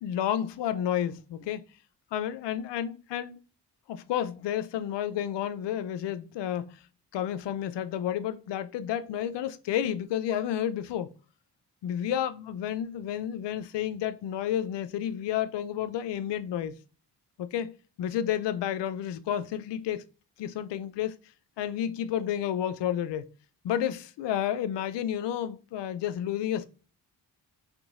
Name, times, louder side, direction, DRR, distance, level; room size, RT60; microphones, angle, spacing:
voice 1, 0.0-1.6 2.1-3.4 3.9-6.8 7.1-11.1 11.8-16.8 17.4-20.0 20.4-21.2 21.6-23.3 23.6-26.6, left 10 dB, 75° left, 0.5 m, -31 dB
3.7 x 2.7 x 2.5 m
cardioid pair, 70°, 43 cm